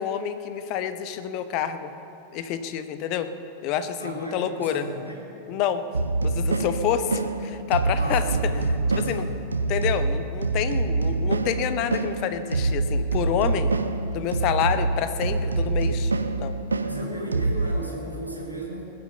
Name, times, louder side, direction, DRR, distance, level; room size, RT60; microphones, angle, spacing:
voice 1, 0.0-1.9 2.3-3.3 3.6-4.8 5.5-5.8 6.2-8.3 9.0-9.2 9.7-13.7 14.1-16.1 16.4-16.5, left 9 dB, 40° left, 10 dB, 0.9 m, -28 dB
voice 2, 4.0-5.2 7.9-9.3 16.8-18.8, right 1 dB, 90° left, -2 dB, 2.9 m, -35 dB
sound 1, 5.9-17.8, right 3 dB, 75° right, 0.6 m, -26 dB
20.5 x 8.9 x 6.9 m, 2.9 s
figure-of-eight pair, 90°, 0 cm